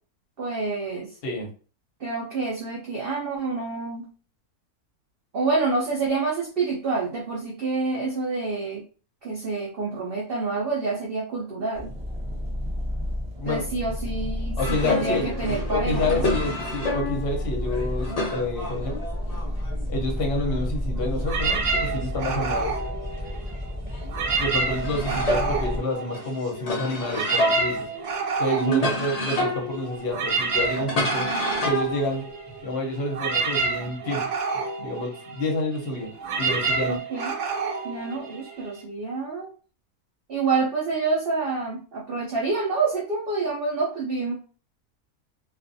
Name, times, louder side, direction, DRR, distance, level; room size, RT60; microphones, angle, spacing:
voice 1, 0.4-1.1 2.0-4.0 5.3-8.8 9.2-11.9 13.4-16.2 28.6-28.9 36.9-37.3 37.8-39.5 40.3-44.3, right 3 dB, 65° right, -4 dB, 0.5 m, -27 dB
sound 1, 11.7-25.8, left 1 dB, 10° right, 0.4 m, -31 dB
sound 2, 14.6-19.9 20.2-23.5 23.9-32.7, left 1 dB, 75° left, 0.3 m, -31 dB
voice 2, 14.6-15.3 15.7-19.0 19.9-22.7 24.2-27.9 28.4-31.3 31.6-32.2 32.6-34.2 34.8-36.1 36.4-37.0, left 1 dB, 55° left, 1 dB, 0.8 m, -28 dB
sound 3, 21.2-23.7 24.0-26.6 26.9-38.8, right 4 dB, 85° right, 1.2 m, -29 dB
2.4 x 2.4 x 2.5 m, 0.38 s
omnidirectional pair, 1.6 m